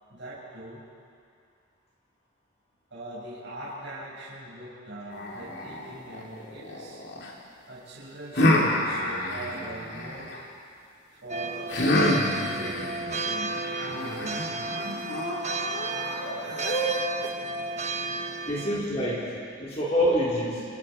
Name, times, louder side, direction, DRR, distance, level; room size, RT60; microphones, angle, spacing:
voice 1, 0.1-0.8 2.9-7.0 7.7-10.4 11.1-12.8 13.2-14.4, right 1 dB, 60° right, -7 dB, 5.5 m, -41 dB
sound 1, 5.1-7.3 8.3-10.4 11.7-17.3, left 1 dB, 55° left, 3.1 m, -28 dB
sound 2, 11.3-18.8, right 3 dB, 35° right, 1.3 m, -33 dB
voice 2, 18.5-20.6, equal, 30° left, -6 dB, 3.8 m, -26 dB
27.5 x 27.5 x 4.5 m, 2.3 s
head